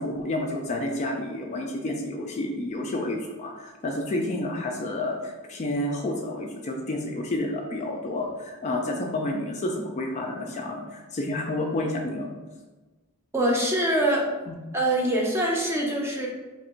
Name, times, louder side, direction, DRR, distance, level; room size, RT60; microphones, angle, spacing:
voice 1, 0.0-12.3 14.5-14.6, left 1 dB, 30° left, 1 dB, 0.3 m, -30 dB
voice 2, 13.3-14.3 14.7-16.3, right 1 dB, 10° right, -2 dB, 0.6 m, -24 dB
2.9 x 2.5 x 4.3 m, 1.2 s
head